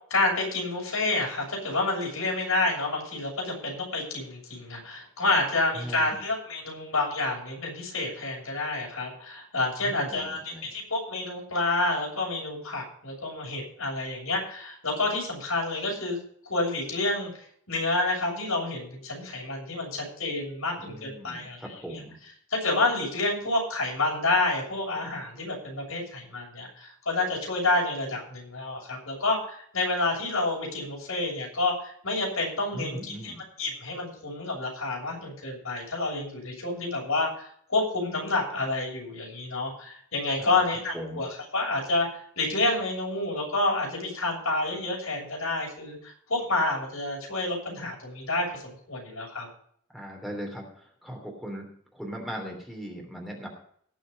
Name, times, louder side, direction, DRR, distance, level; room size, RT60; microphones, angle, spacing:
voice 1, 0.1-16.2 16.5-17.3 17.7-22.0 22.5-33.3 33.6-41.3 41.5-49.5, left 2 dB, 80° left, -1 dB, 7.1 m, -29 dB
voice 2, 5.7-6.2 9.8-10.7 20.8-22.2 32.7-33.4 40.4-40.6 40.9-41.2 49.9-51.6 51.9-53.5, equal, ahead, 0 dB, 3.2 m, -39 dB
18.5 x 6.9 x 5.3 m, 0.62 s
head